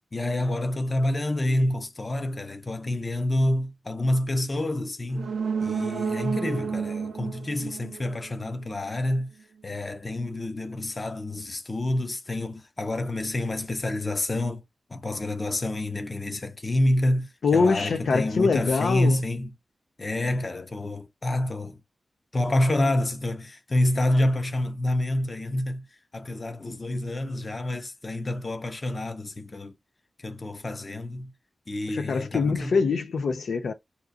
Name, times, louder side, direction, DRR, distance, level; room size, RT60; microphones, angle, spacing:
voice 1, 0.1-9.3 9.6-14.6 14.9-19.5 20.0-21.8 22.3-25.9 26.1-29.8 30.2-31.3 31.7-32.8, left 1 dB, 30° left, 0.6 m, -28 dB
sound 1, 5.1-8.8 9.1-9.2, right 6 dB, 80° right, 0.5 m, -31 dB
voice 2, 17.4-19.2 31.9-33.7, left 4 dB, 80° left, 0.5 m, -24 dB
2.8 x 2.4 x 3.7 m
wide cardioid pair, 130°, 0 cm